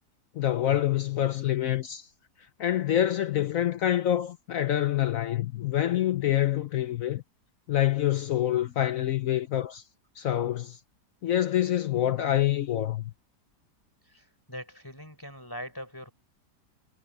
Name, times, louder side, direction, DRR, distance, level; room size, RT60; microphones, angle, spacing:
voice 1, 0.4-2.1 2.6-7.2 7.7-9.8 10.2-10.8 11.2-13.1, left 12 dB, 65° left, 1.0 m, -26 dB
voice 2, 14.0-16.1, equal, 10° left, 4.3 m, -42 dB
omnidirectional pair, 1.8 m